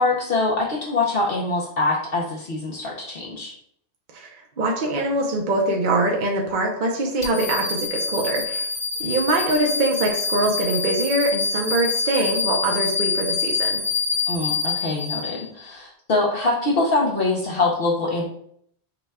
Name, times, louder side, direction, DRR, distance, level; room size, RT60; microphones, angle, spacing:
voice 1, 0.0-3.5 14.3-18.2, left 2 dB, 65° left, -3 dB, 0.9 m, -24 dB
voice 2, 4.6-8.7 9.0-13.8, right 2 dB, 55° right, 0 dB, 0.8 m, -23 dB
sound 1, 7.2-15.7, left 4 dB, 35° left, 0.7 m, -26 dB
5.8 x 2.2 x 3.5 m, 0.66 s
omnidirectional pair, 1.1 m